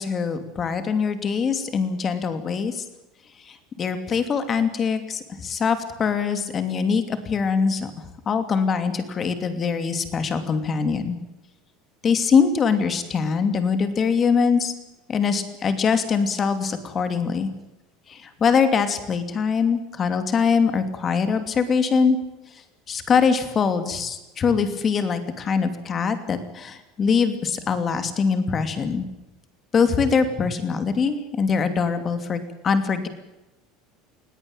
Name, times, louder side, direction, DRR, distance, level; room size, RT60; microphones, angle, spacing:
voice 1, 0.0-2.8 3.4-11.2 12.0-14.7 15.1-17.5 18.1-22.2 22.5-29.1 29.7-33.1, left 5 dB, 25° left, 10 dB, 2.8 m, -23 dB
20.0 x 17.5 x 9.0 m, 0.99 s
cardioid pair, 155°, 0 cm